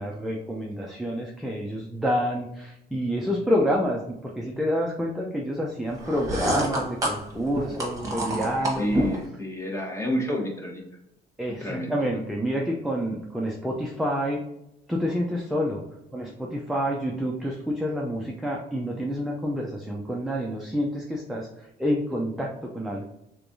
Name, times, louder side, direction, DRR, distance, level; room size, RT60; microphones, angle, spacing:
voice 1, 0.0-9.0 11.4-14.4 14.9-15.8 16.1-23.0, equal, ahead, -2 dB, 0.5 m, -28 dB
sound 1, 6.0-9.3, right 1 dB, 20° right, 1.2 m, -28 dB
voice 2, 8.8-10.8 11.6-12.2, equal, 15° left, -1 dB, 1.1 m, -29 dB
3.4 x 3.2 x 2.6 m, 0.85 s
cardioid pair, 110°, 17 cm